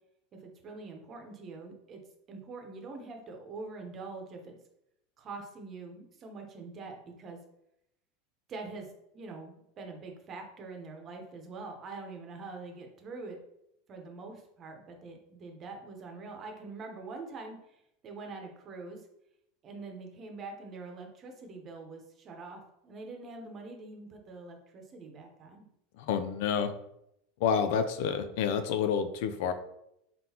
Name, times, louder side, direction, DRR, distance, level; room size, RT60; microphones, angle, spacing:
voice 1, 0.4-2.0 2.3-4.6 5.2-7.4 8.5-8.9 9.1-13.4 13.9-19.1 19.6-25.7, right 3 dB, 35° right, 3 dB, 1.0 m, -44 dB
voice 2, 26.0-26.7 27.4-29.5, left 7 dB, 70° left, 9 dB, 0.4 m, -29 dB
3.8 x 3.7 x 2.9 m, 0.80 s
supercardioid pair, 120°, 0 cm